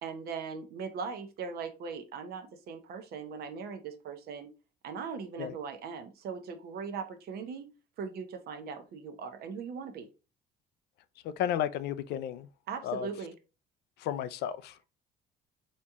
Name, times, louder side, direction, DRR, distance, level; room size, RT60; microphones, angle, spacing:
voice 1, 0.0-4.5 4.8-7.7 8.0-10.1 12.7-13.3, right 6 dB, 65° right, 0.9 m, -39 dB
voice 2, 11.2-12.5 12.8-13.1 14.0-14.8, left 10 dB, 75° left, 0.5 m, -33 dB
4.2 x 2.9 x 3.6 m
cardioid pair, 110°, 17 cm